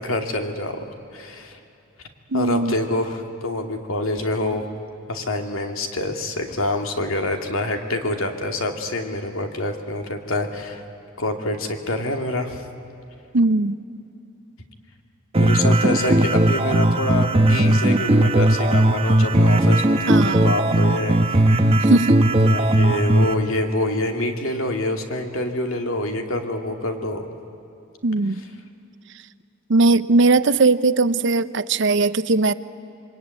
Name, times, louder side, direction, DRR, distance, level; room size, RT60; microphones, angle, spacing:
voice 1, 0.0-1.6 2.3-4.7 5.1-10.8 11.2-12.6 15.4-21.2 22.4-27.3, left 1 dB, 85° left, 4 dB, 2.5 m, -26 dB
voice 2, 2.3-2.7 13.3-13.8 20.1-20.5 21.8-22.2 28.0-28.4 29.7-32.5, right 3 dB, 60° right, 15 dB, 0.7 m, -19 dB
sound 1, 15.3-23.3, right 1 dB, 30° right, 1.1 m, -17 dB
27.0 x 23.0 x 9.6 m, 2.6 s
head